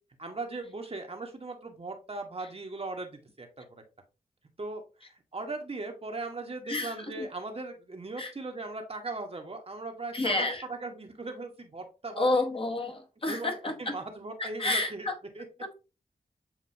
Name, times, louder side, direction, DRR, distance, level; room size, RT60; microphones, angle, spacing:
voice 1, 0.2-3.7 4.6-12.4 13.3-15.1 15.3-15.5, right 3 dB, 40° right, 4 dB, 1.0 m, -39 dB
voice 2, 6.7-7.2 8.2-8.3 10.1-10.6 12.2-14.0 14.4-15.1, left 2 dB, 40° left, 4 dB, 1.0 m, -30 dB
7.3 x 2.5 x 2.6 m, 0.32 s
cardioid pair, 60°, 15 cm